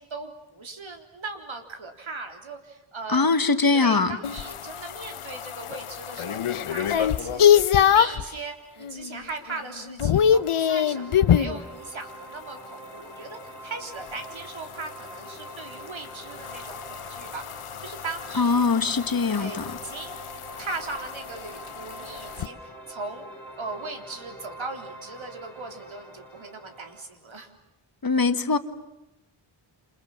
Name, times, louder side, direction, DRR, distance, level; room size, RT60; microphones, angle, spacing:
voice 1, 0.0-3.5 3.7-18.7 19.0-20.2 20.6-23.2 23.6-27.5, right 3 dB, 70° right, 3.8 m, -38 dB
voice 2, 3.1-4.1 18.4-19.6 28.0-28.6, left 4 dB, 45° left, 1.5 m, -22 dB
sound 1, 4.2-8.3 8.8-9.2 9.5-11.6 14.1-22.5, left 9 dB, 90° left, 1.0 m, -25 dB
sound 2, 10.0-27.0, right 1 dB, 5° left, 7.9 m, -45 dB
28.0 x 28.0 x 7.3 m
wide cardioid pair, 110°, 49 cm